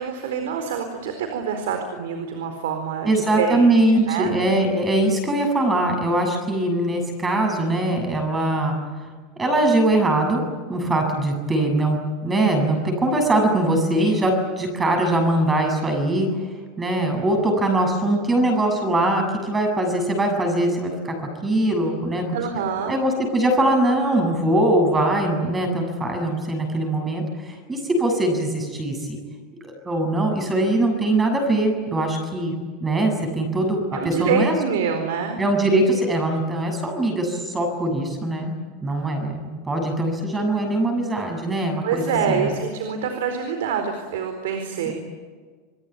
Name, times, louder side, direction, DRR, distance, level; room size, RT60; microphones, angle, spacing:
voice 1, 0.0-3.7 4.1-4.3 22.3-23.0 33.9-35.4 41.8-44.9, right 6 dB, 90° right, 7 dB, 4.3 m, -26 dB
voice 2, 3.1-8.8 9.4-10.4 10.7-12.0 12.2-16.3 16.8-21.2 21.4-22.4 22.9-29.2 29.6-34.5 35.4-38.5 38.8-42.5 44.9-45.0, right 1 dB, 15° right, 4 dB, 7.3 m, -22 dB
28.5 x 22.0 x 9.5 m, 1.5 s
supercardioid pair, 155°, 0 cm